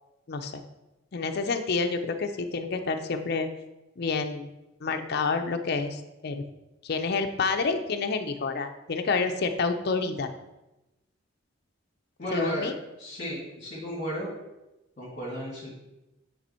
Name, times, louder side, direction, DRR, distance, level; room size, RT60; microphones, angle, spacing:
voice 1, 0.3-0.6 1.1-3.5 4.0-4.5 4.8-6.4 6.8-10.3 12.3-12.7, left 4 dB, 55° left, 6 dB, 0.6 m, -28 dB
voice 2, 12.2-12.7 13.0-14.3 15.0-15.7, equal, 40° left, -8 dB, 2.1 m, -34 dB
8.8 x 3.4 x 4.3 m, 0.99 s
head